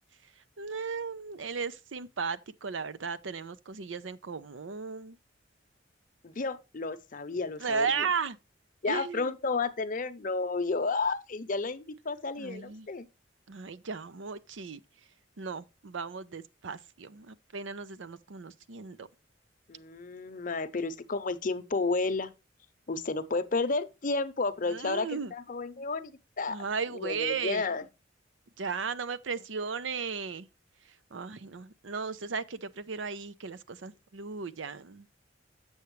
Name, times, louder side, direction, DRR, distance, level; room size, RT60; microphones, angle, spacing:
voice 1, 0.6-5.2 7.6-8.4 8.9-9.3 12.4-12.9 13.5-14.8 15.4-19.1 24.7-25.3 26.5-27.7 28.6-30.5 31.1-35.1, right 5 dB, 80° right, 0.6 m, -35 dB
voice 2, 6.2-8.1 8.8-13.1 19.7-22.3 22.9-26.6 26.9-27.8, left 3 dB, 45° left, 0.7 m, -32 dB
7.9 x 6.9 x 3.1 m
head